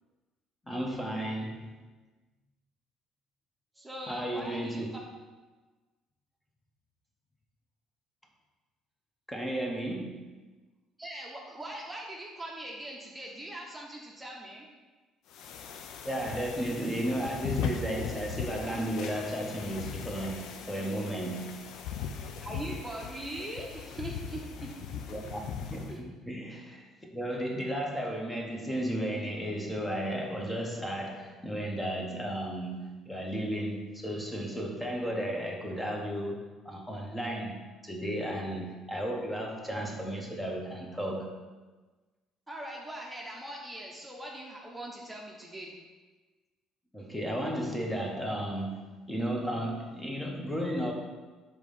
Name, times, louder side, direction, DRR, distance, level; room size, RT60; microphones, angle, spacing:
voice 1, 0.7-1.7 4.1-4.9 9.3-10.2 16.0-21.7 25.1-41.4 46.9-50.9, equal, 10° left, 1 dB, 1.2 m, -34 dB
voice 2, 3.7-5.0 11.0-14.7 22.4-24.7 25.9-26.0 42.5-45.7, right 1 dB, 10° right, -2 dB, 1.0 m, -41 dB
sound 1, 15.3-26.0, left 7 dB, 70° left, 0.5 m, -39 dB
4.9 x 3.7 x 5.5 m, 1.3 s
supercardioid pair, 75°, 0 cm